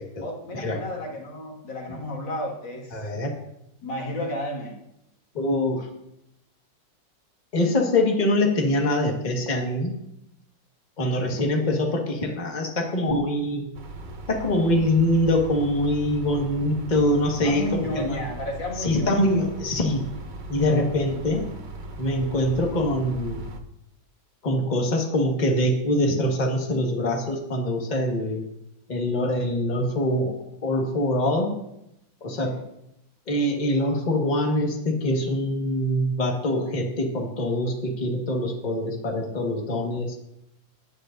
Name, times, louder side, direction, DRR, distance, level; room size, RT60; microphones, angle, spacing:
voice 1, 0.2-3.0 3.8-4.7 17.4-19.2 28.2-28.3 32.3-32.6, left 1 dB, 80° left, -1 dB, 2.7 m, -32 dB
voice 2, 2.9-3.3 5.3-5.9 7.5-9.9 11.0-13.7 14.3-18.2 18.8-20.0 20.5-21.5 22.0-23.4 24.4-28.4 28.9-30.4 30.6-31.5 32.2-32.6 33.3-40.2, left 1 dB, 25° left, 0 dB, 1.6 m, -24 dB
sound 1, 13.7-23.6, right 2 dB, 60° right, 0.5 m, -39 dB
17.0 x 9.7 x 2.6 m, 0.83 s
omnidirectional pair, 2.0 m